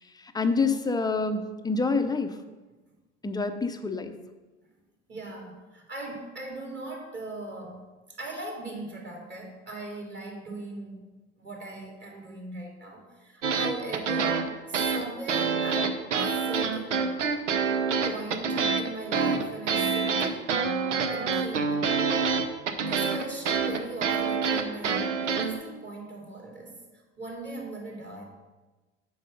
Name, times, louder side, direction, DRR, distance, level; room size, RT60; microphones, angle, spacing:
voice 1, 0.3-2.3 3.2-4.1, left 4 dB, 10° left, 7 dB, 0.6 m, -27 dB
voice 2, 5.1-7.9 8.2-11.1 11.4-16.0 16.4-17.2 18.0-20.3 21.1-21.8 22.7-26.8 27.2-28.2, right 2 dB, 30° right, -2 dB, 2.9 m, -39 dB
sound 1, 13.4-25.5, right 5 dB, 85° right, 0.7 m, -26 dB
7.5 x 5.5 x 5.3 m, 1.2 s
hypercardioid pair, 75°, 35 cm